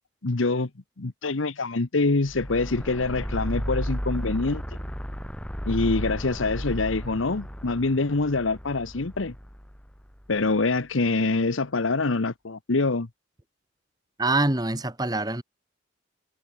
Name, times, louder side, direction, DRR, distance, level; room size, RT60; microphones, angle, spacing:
voice 1, 0.2-0.7 1.0-4.6 5.6-9.3 10.3-13.1, left 3 dB, 85° left, 1.1 m, -25 dB
sound 1, 2.2-10.6, equal, 5° left, 1.9 m, -34 dB
voice 2, 14.2-15.4, right 2 dB, 20° right, 1.6 m, -25 dB
head